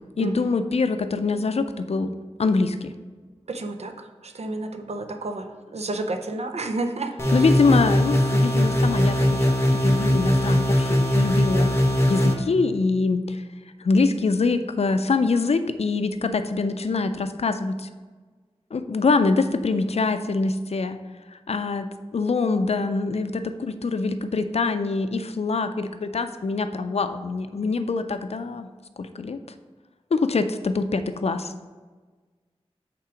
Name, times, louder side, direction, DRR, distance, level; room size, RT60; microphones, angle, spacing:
voice 1, 0.2-2.1 2.4-2.9 7.3-11.7 12.1-13.4 13.8-17.9 18.7-21.0 21.5-28.7 29.0-29.4 30.1-31.5, left 4 dB, 70° left, 10 dB, 0.4 m, -24 dB
voice 2, 3.5-7.5, right 2 dB, 80° right, 6 dB, 0.5 m, -31 dB
sound 1, 7.2-12.3, left 1 dB, 25° left, 0.9 m, -20 dB
5.7 x 3.7 x 4.9 m, 1.4 s
wide cardioid pair, 65°, 11 cm